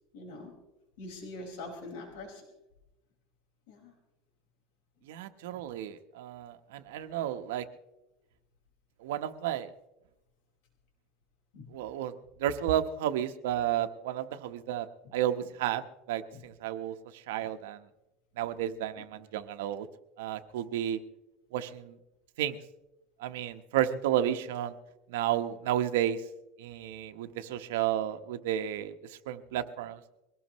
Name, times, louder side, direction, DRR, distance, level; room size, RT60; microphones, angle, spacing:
voice 1, 0.1-0.5 1.0-2.4 3.7-3.9 5.5-5.6 11.5-11.7 16.3-16.4, left 2 dB, 70° left, 0 dB, 5.2 m, -43 dB
voice 2, 5.1-7.7 9.0-9.7 11.7-12.1 12.4-14.9 15.1-17.8 18.4-19.9 20.2-21.0 21.5-22.0 22.4-22.6 23.2-24.7 25.1-26.2 26.6-30.0, right 11 dB, 90° right, 8 dB, 1.1 m, -32 dB
23.0 x 18.5 x 3.1 m, 0.95 s
supercardioid pair, 165°, 0 cm